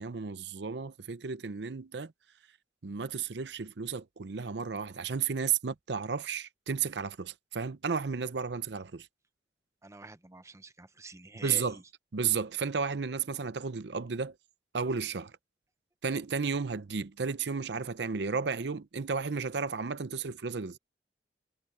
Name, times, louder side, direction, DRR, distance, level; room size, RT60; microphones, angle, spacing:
voice 1, 0.0-2.1 2.8-9.1 11.4-11.8 12.1-14.3 14.7-15.3 16.0-20.8, right 5 dB, 75° right, 0.7 m, -33 dB
voice 2, 9.8-11.8, right 3 dB, 15° right, 0.8 m, -46 dB
head